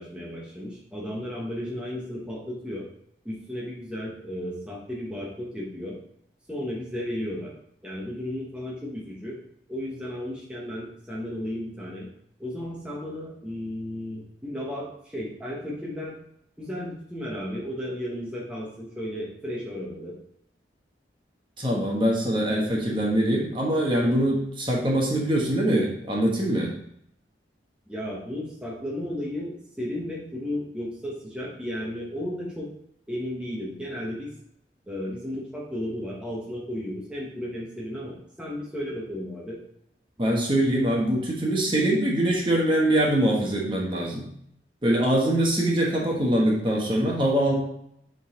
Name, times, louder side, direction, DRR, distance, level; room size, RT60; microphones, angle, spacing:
voice 1, 0.0-2.9 3.2-6.0 6.5-7.5 7.8-9.4 9.7-12.1 12.4-16.1 16.6-20.1 27.9-32.7 33.1-34.3 34.9-39.6, left 1 dB, 5° right, -5 dB, 1.1 m, -34 dB
voice 2, 21.6-26.7 40.2-44.2 44.8-47.5, right 1 dB, 25° right, -2 dB, 1.2 m, -23 dB
7.1 x 3.9 x 3.8 m, 0.72 s
head